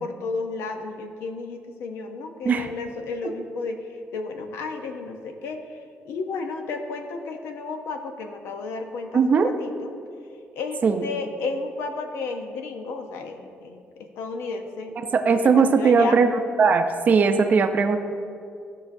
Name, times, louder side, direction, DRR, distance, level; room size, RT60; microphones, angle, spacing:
voice 1, 0.0-5.6 6.0-9.9 10.6-15.0 15.2-16.2, left 3 dB, 85° left, 5 dB, 0.8 m, -33 dB
voice 2, 9.1-9.5 10.8-11.0 15.0-16.3 16.6-18.0, right 5 dB, 40° right, 7 dB, 0.6 m, -19 dB
15.0 x 5.6 x 2.6 m, 2.4 s
cardioid pair, 125°, 4 cm